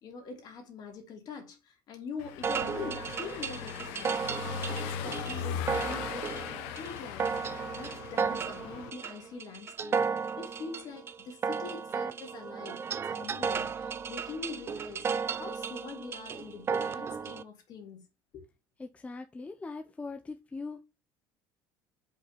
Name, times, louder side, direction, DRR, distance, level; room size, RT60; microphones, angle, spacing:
voice 1, 0.0-18.1 18.3-18.4, left 5 dB, 50° left, 3.0 m, -44 dB
Car passing by / Engine, 2.2-8.9, left 9 dB, 85° left, 1.0 m, -39 dB
sound 1, 2.4-17.4, right 6 dB, 30° right, 0.5 m, -34 dB
voice 2, 18.8-20.8, left 3 dB, 15° left, 0.7 m, -41 dB
5.5 x 4.2 x 5.9 m
cardioid pair, 125°, 8 cm